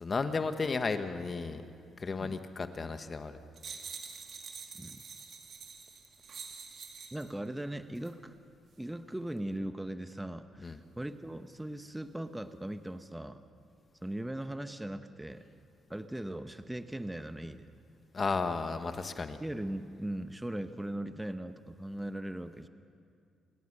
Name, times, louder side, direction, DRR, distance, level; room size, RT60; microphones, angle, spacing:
voice 1, 0.0-1.6 2.0-3.4 10.6-10.8 18.1-19.4, left 4 dB, 35° left, 9 dB, 1.2 m, -33 dB
sound 1, 3.6-7.3 8.0-8.1, right 5 dB, 55° right, 2.6 m, -46 dB
voice 2, 7.1-8.4 8.8-13.4 14.0-15.4 15.9-17.7 19.4-22.7, right 1 dB, 10° right, 9 dB, 0.8 m, -39 dB
30.0 x 16.5 x 6.6 m, 2.3 s
cardioid pair, 90°, 0 cm